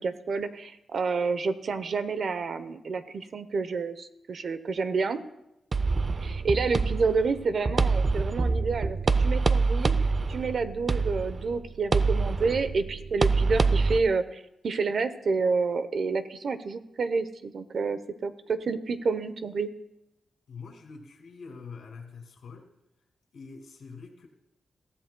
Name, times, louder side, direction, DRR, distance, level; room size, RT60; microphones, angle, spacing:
voice 1, 0.0-5.2 6.2-9.9 10.3-19.7, right 4 dB, 60° right, 11 dB, 0.8 m, -29 dB
sound 1, 5.7-14.0, right 4 dB, 40° right, 0.5 m, -26 dB
voice 2, 20.5-22.7 23.3-24.3, left 5 dB, 80° left, 2 dB, 2.4 m, -45 dB
21.5 x 15.5 x 2.3 m, 0.88 s
wide cardioid pair, 120°, 0 cm